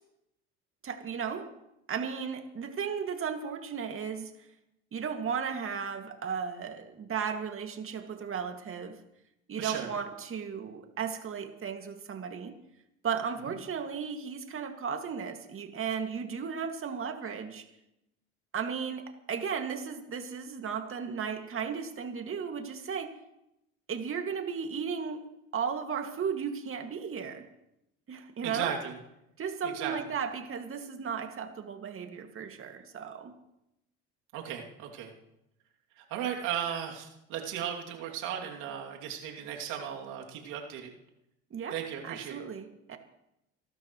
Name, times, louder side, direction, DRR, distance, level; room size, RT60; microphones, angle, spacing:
voice 1, 0.8-1.5 1.9-4.3 4.9-9.0 9.5-12.6 13.0-17.7 18.5-23.1 23.9-25.2 25.5-27.4 28.1-28.7 29.4-33.3 41.5-41.8 42.0-43.0, right 6 dB, 40° right, 5 dB, 2.2 m, -35 dB
voice 2, 9.6-9.9 13.4-13.6 28.4-29.0 29.6-30.0 34.3-35.1 36.0-40.9 41.7-42.4, right 9 dB, 75° right, 0 dB, 2.8 m, -36 dB
25.0 x 12.5 x 3.2 m, 0.85 s
supercardioid pair, 80°, 31 cm